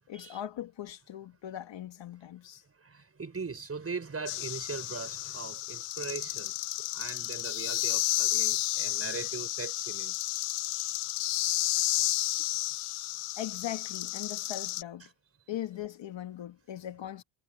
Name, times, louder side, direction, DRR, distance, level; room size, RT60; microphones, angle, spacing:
voice 1, 0.1-2.6 13.4-15.1 15.5-17.2, left 11 dB, 60° left, 2.2 m, -39 dB
voice 2, 2.8-10.2, right 4 dB, 30° right, 6.6 m, -40 dB
sound 1, 4.3-14.8, left 16 dB, 85° left, 1.2 m, -32 dB
cardioid pair, 95°, 50 cm